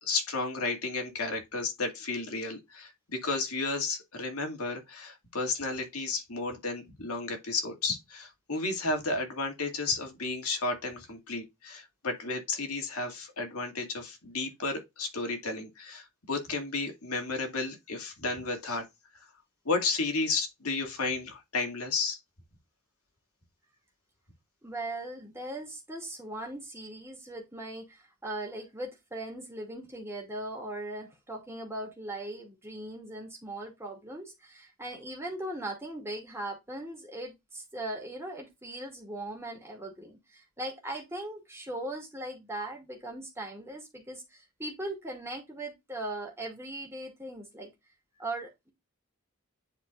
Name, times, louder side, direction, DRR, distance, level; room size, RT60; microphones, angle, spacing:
voice 1, 0.0-18.8 19.6-22.2, left 3 dB, 80° left, 2.3 m, -32 dB
voice 2, 24.6-47.7 48.2-48.7, right 1 dB, 10° right, 2.3 m, -39 dB
10.0 x 4.4 x 2.5 m
head